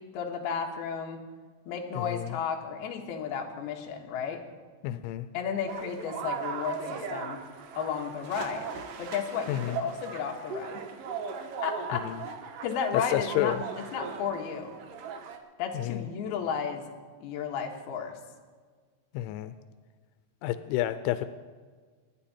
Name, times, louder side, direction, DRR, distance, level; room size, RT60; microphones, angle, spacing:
voice 1, 0.1-1.2 1.7-4.4 5.3-7.4 7.7-8.7 9.0-10.8 11.6-12.1 12.6-14.7 15.6-16.8 17.2-18.2, left 6 dB, 65° left, 1 dB, 3.1 m, -33 dB
voice 2, 2.0-2.3 4.8-5.3 9.5-9.8 12.1-12.2 13.1-13.6 15.7-16.0 19.1-19.5 20.4-21.3, left 14 dB, 85° left, 12 dB, 3.0 m, -30 dB
sound 1, 5.7-15.4, right 6 dB, 70° right, 2.1 m, -38 dB
26.5 x 10.5 x 4.3 m, 1.5 s
omnidirectional pair, 5.4 m